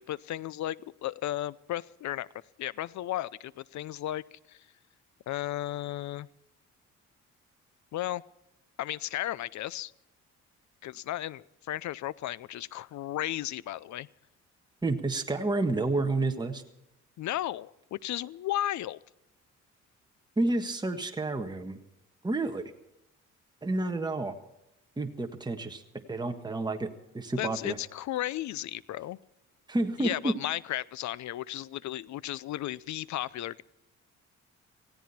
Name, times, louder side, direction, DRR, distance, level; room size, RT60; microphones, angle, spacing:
voice 1, 0.0-2.3 2.6-4.6 5.3-6.3 7.9-8.2 8.8-9.9 10.8-14.1 17.2-19.0 27.4-29.2 30.0-33.6, left 13 dB, 70° left, 21 dB, 0.6 m, -34 dB
voice 2, 14.8-16.6 20.4-21.8 22.2-22.7 23.6-24.3 25.0-25.8 26.1-26.9 27.1-27.8 29.7-30.3, right 2 dB, 15° right, 4 dB, 1.6 m, -30 dB
18.0 x 16.5 x 4.4 m, 0.88 s
cardioid pair, 90°, 30 cm